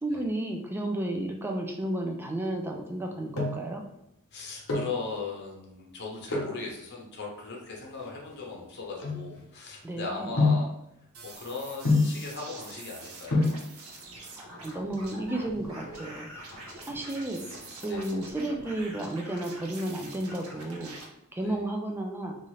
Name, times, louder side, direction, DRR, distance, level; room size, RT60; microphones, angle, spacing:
voice 1, 0.0-3.8 9.8-10.4 14.4-16.5 16.9-17.4 17.8-20.9 21.3-22.4, right 1 dB, 10° right, 2 dB, 0.3 m, -32 dB
sound 1, 2.9-3.8 4.5-5.0 6.2-6.6 7.3-9.7 10.4-10.8 11.8-12.3 13.0-13.1 13.3-13.7 14.8-15.3 15.6-15.7 15.9-16.1 16.4-16.8 17.1-18.2 18.6-19.0 19.4-20.6 20.8-20.9, left 3 dB, 75° left, 0.9 m, -28 dB
voice 2, 4.3-10.7 11.2-13.6 17.9-18.1 21.4-21.6, left 4 dB, 50° left, -2 dB, 0.7 m, -38 dB
sound 2, 11.1-21.0, right 2 dB, 75° right, 0.7 m, -45 dB
2.7 x 2.4 x 3.1 m, 0.82 s
head